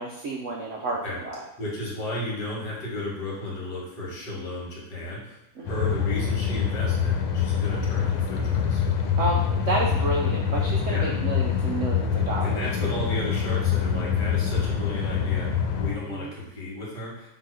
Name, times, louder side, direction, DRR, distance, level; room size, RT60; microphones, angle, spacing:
voice 1, 0.0-1.4 5.6-5.7 9.2-13.0 16.1-16.3, right 2 dB, 90° right, -1 dB, 0.6 m, -30 dB
voice 2, 1.6-5.4 5.7-8.8 10.9-11.1 12.4-17.3, left 1 dB, 60° left, -5 dB, 2.5 m, -33 dB
sound 1, 5.7-15.9, left 7 dB, 90° left, 1.6 m, -25 dB
5.1 x 3.9 x 4.8 m, 0.90 s
omnidirectional pair, 2.2 m